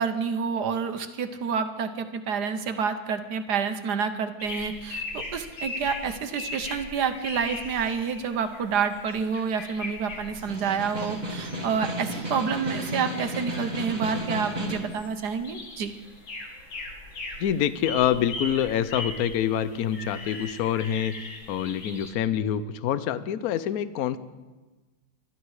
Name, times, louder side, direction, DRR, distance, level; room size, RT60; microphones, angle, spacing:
voice 1, 0.0-15.9, right 6 dB, 60° right, 9 dB, 1.4 m, -28 dB
sound 1, 4.4-22.1, left 2 dB, 85° left, 2.8 m, -40 dB
Snare drum, 10.5-15.0, right 1 dB, 25° right, 1.6 m, -33 dB
voice 2, 17.4-21.1 21.5-24.2, left 10 dB, 60° left, 14 dB, 1.0 m, -26 dB
24.5 x 11.5 x 4.8 m, 1.2 s
omnidirectional pair, 2.1 m